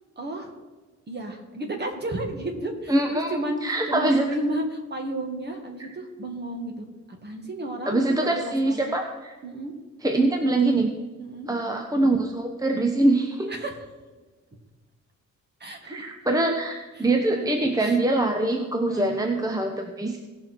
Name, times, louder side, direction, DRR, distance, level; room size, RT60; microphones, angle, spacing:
voice 1, 0.2-0.5 1.1-8.9 9.4-9.7 11.2-11.5 13.5-13.9 15.6-16.1 17.0-17.5 17.8-18.0 18.9-19.2, right 1 dB, 35° right, 3 dB, 2.0 m, -32 dB
voice 2, 2.9-4.2 7.9-9.3 10.0-10.9 11.5-13.5 15.9-20.2, right 2 dB, 10° right, 3 dB, 0.9 m, -24 dB
18.0 x 6.2 x 4.5 m, 1.3 s
cardioid pair, 115°, 30 cm